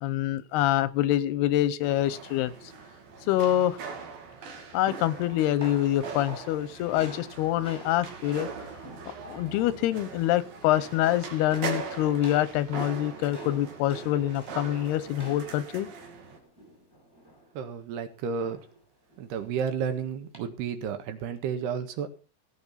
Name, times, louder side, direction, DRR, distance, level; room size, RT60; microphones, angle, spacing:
voice 1, 0.0-2.5 3.3-3.8 4.7-8.5 9.3-15.9, left 13 dB, 85° left, 16 dB, 2.9 m, -26 dB
sound 1, 1.8-16.4, right 5 dB, 65° right, 4.1 m, -41 dB
sound 2, 5.2-9.7 10.0-10.3 10.6-11.1 11.5-17.5 18.4-18.7 19.1-19.3 20.3-20.4, right 1 dB, 5° right, 4.6 m, -47 dB
voice 2, 17.6-18.6 19.2-22.1, right 7 dB, 90° right, 8 dB, 3.7 m, -32 dB
16.5 x 8.7 x 5.7 m, 0.36 s
omnidirectional pair, 4.5 m